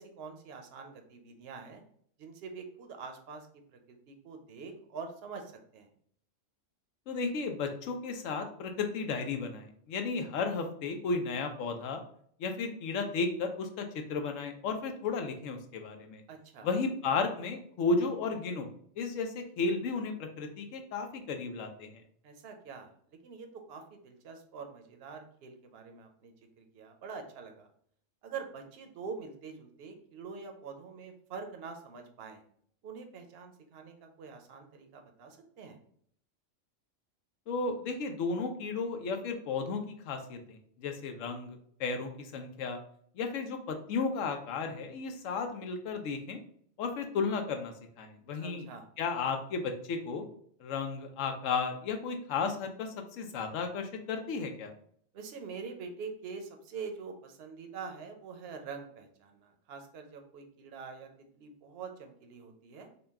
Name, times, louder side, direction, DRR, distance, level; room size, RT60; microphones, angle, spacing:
voice 1, 0.0-1.8 2.2-5.9 16.3-16.7 22.2-27.7 28.2-32.4 32.8-35.8 48.4-48.9 55.1-61.1 61.4-62.9, right 5 dB, 60° right, 5 dB, 0.8 m, -45 dB
voice 2, 7.1-12.0 12.4-16.2 16.6-18.7 19.0-21.9 37.5-42.8 43.2-46.4 46.8-48.6 49.0-50.2 50.6-54.7, left 4 dB, 85° left, 5 dB, 1.0 m, -34 dB
3.9 x 2.2 x 3.4 m, 0.63 s
omnidirectional pair, 1.3 m